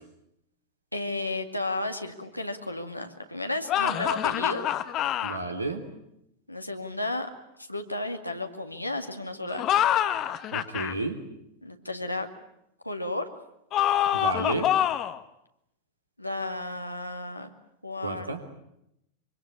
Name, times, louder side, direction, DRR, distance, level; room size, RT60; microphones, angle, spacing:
voice 1, 0.9-4.7 6.5-7.3 7.6-9.7 11.6-12.3 12.8-13.3 16.2-17.5 17.8-18.4, left 2 dB, 85° left, 4 dB, 2.3 m, -33 dB
sound 1, 3.7-5.4 9.5-10.9 13.7-15.2, left 11 dB, 35° left, 1.3 m, -26 dB
voice 2, 5.2-5.8 10.5-11.2 14.1-14.7 18.0-18.4, right 2 dB, 80° right, 4 dB, 3.4 m, -31 dB
25.0 x 24.5 x 8.5 m, 0.80 s
figure-of-eight pair, 90°, 0 cm